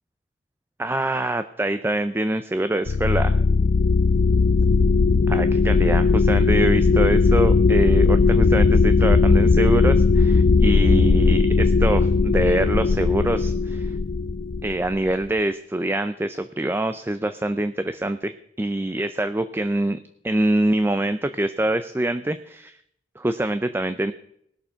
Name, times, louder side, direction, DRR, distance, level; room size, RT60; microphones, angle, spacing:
voice 1, 0.8-3.4 5.3-13.9 14.6-20.0 20.2-22.8 23.2-24.1, right 1 dB, 15° right, 10 dB, 0.5 m, -25 dB
sound 1, 2.9-15.1, left 4 dB, 80° left, 0.5 m, -18 dB
19.0 x 6.9 x 5.7 m, 0.71 s
head